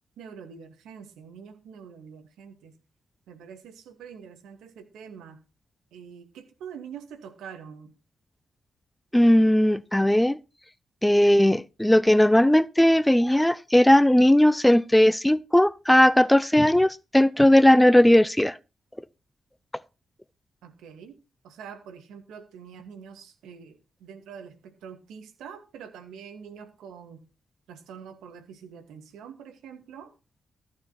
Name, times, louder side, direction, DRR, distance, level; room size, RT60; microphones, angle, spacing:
voice 1, 0.2-2.7 3.3-5.4 5.9-7.9 20.6-21.2 21.4-27.2 27.7-30.1, right 7 dB, 90° right, 2.3 m, -45 dB
voice 2, 9.1-10.4 11.0-18.6, left 1 dB, 10° left, 0.7 m, -18 dB
14.5 x 9.7 x 4.2 m
supercardioid pair, 50°, 0 cm